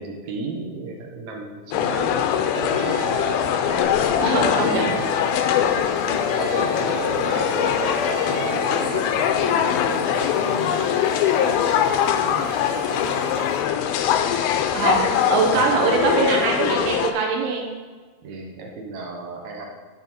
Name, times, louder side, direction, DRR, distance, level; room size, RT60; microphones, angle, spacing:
voice 1, 0.0-3.1 3.7-5.1 6.4-12.6 12.9-13.5 18.2-19.7, right 3 dB, 65° right, 1 dB, 2.0 m, -34 dB
sound 1, 1.7-17.1, left 9 dB, 85° left, 2.4 m, -22 dB
Keyboard (musical) / Ringtone, 2.5-3.9 4.3-5.6 6.1-7.4 7.8-9.2, right 1 dB, 45° right, 0.9 m, -32 dB
sound 2, 3.7-13.6, equal, 10° right, 1.9 m, -39 dB
voice 2, 4.2-4.9 14.7-17.7, right 5 dB, 90° right, 0 dB, 2.9 m, -22 dB
10.5 x 4.9 x 4.2 m, 1.4 s
omnidirectional pair, 4.4 m